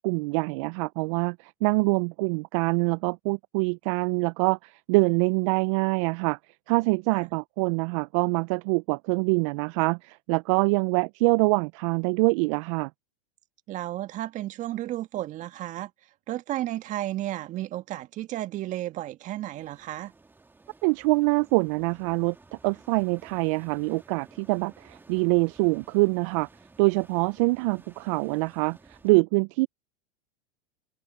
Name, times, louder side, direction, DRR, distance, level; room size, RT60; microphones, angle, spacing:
voice 1, 0.0-6.4 6.7-12.9 20.8-22.3 22.6-26.5 26.8-29.7, right 28 dB, 60° right, 0.6 m, -25 dB
voice 2, 13.7-15.9 16.3-20.1, right 14 dB, 40° right, 1.9 m, -33 dB
sound 1, 19.5-29.1, right 3 dB, 10° right, 1.9 m, -55 dB
hypercardioid pair, 100°, 19 cm